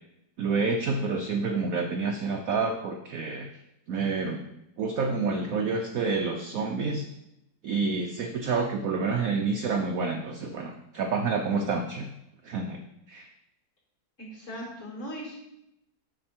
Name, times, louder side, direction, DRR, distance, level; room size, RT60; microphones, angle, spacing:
voice 1, 0.4-3.5 3.9-4.4 4.8-7.1 7.6-12.1 12.4-12.8 13.1-13.3, right 4 dB, 65° right, 4 dB, 0.9 m, -28 dB
voice 2, 14.2-15.4, equal, 40° left, -5 dB, 3.3 m, -38 dB
7.7 x 5.9 x 4.4 m, 0.84 s
omnidirectional pair, 2.1 m